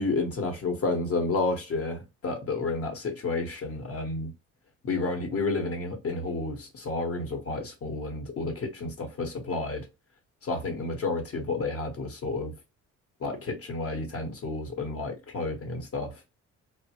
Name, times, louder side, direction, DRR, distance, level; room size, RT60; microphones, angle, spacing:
voice 1, 0.0-4.3 4.8-9.9 10.4-12.5 13.2-16.2, left 3 dB, 50° left, 0.9 m, -31 dB
3.0 x 2.0 x 2.8 m
cardioid pair, 90°, 30 cm